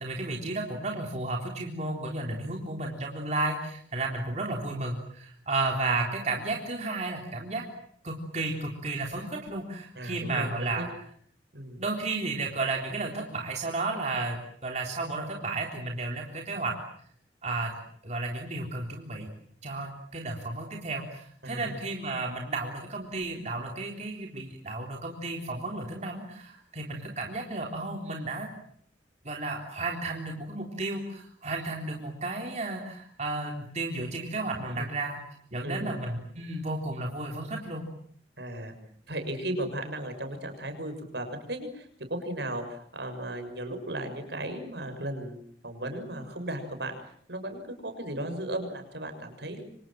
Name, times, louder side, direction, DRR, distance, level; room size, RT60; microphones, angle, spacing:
voice 1, 0.0-7.6 8.0-10.9 11.8-16.8 17.4-19.3 19.6-28.5 29.2-35.2 35.5-37.8, right 2 dB, 40° right, 1 dB, 3.7 m, -33 dB
voice 2, 9.9-10.9 11.5-11.8 21.4-21.8 34.7-34.9 35.6-36.0 38.4-38.7 39.1-49.6, right 1 dB, 70° right, 7 dB, 6.7 m, -36 dB
29.0 x 26.0 x 7.6 m, 0.62 s
head